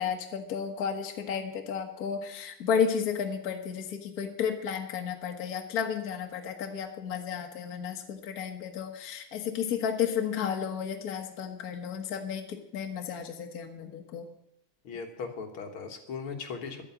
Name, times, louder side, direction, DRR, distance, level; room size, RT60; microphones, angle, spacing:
voice 1, 0.0-14.3, left 7 dB, 90° left, 4 dB, 0.8 m, -32 dB
voice 2, 14.8-16.8, left 5 dB, 50° left, 4 dB, 1.8 m, -38 dB
11.5 x 8.7 x 8.2 m, 0.80 s
omnidirectional pair, 3.7 m